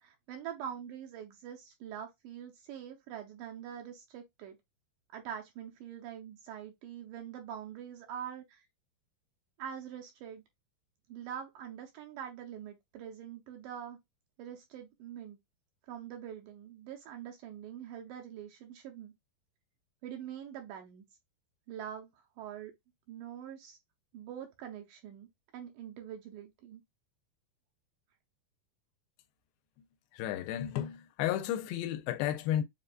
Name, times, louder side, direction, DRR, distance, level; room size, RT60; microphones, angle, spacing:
voice 1, 0.0-4.6 5.1-8.7 9.6-10.4 11.1-14.0 14.4-15.4 15.9-19.1 20.0-21.0 21.7-22.7 23.1-23.8 24.1-25.3 25.5-26.8, right 9 dB, 80° right, 2.0 m, -44 dB
voice 2, 30.1-32.6, left 11 dB, 85° left, 2.5 m, -33 dB
7.3 x 2.5 x 2.2 m
omnidirectional pair, 4.2 m